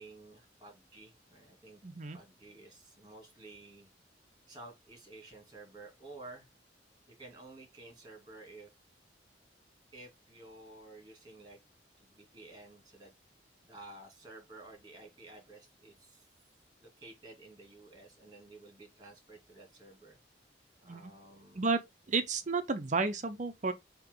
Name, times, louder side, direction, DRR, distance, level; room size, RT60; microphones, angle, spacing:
voice 1, 0.0-1.8 2.1-3.9 4.5-6.5 7.2-8.7 9.9-11.6 12.0-13.1 13.6-16.2 16.8-20.2 20.8-21.7, right 2 dB, 25° right, 2.8 m, -52 dB
voice 2, 1.8-2.2 20.8-21.1 21.5-21.8 22.1-23.7, right 4 dB, 40° right, 0.7 m, -32 dB
8.1 x 3.0 x 3.9 m
head